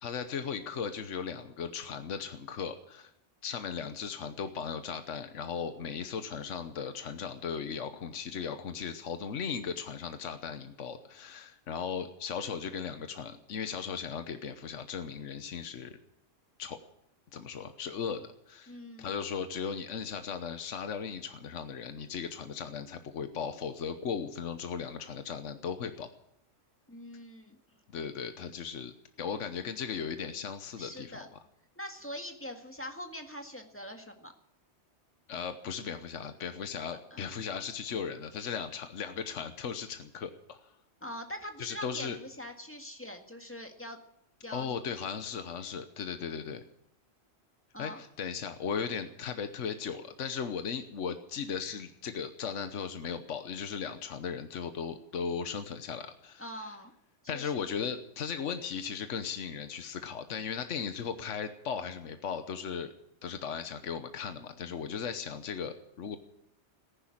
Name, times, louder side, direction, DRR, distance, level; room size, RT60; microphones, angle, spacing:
voice 1, 0.0-3.1 3.4-16.0 16.6-16.8 17.3-18.7 19.0-26.1 27.9-28.9 29.2-31.2 35.3-40.7 41.6-42.2 44.5-46.6 47.8-56.4 57.3-62.9 63.2-66.2, left 6 dB, 75° left, 9 dB, 1.4 m, -37 dB
voice 2, 18.7-19.1 26.9-27.6 30.8-31.3 31.8-34.3 37.1-37.2 41.0-44.0 44.4-44.7 47.7-48.0 56.4-56.9 57.3-57.5, equal, 10° left, 4 dB, 1.8 m, -43 dB
14.5 x 11.0 x 8.7 m, 0.77 s
omnidirectional pair, 1.3 m